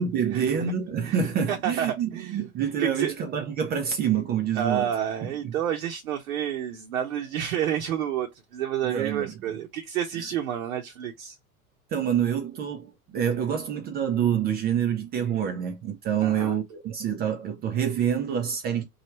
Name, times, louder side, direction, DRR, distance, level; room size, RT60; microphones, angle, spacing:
voice 1, 0.0-4.9 5.4-5.5 8.8-9.3 11.9-18.8, right 8 dB, 20° right, 0.4 m, -27 dB
voice 2, 1.0-2.4 2.8-3.1 4.5-11.4 16.2-16.5, right 9 dB, 65° right, 0.8 m, -30 dB
3.1 x 2.3 x 3.0 m
figure-of-eight pair, 85°, 45 cm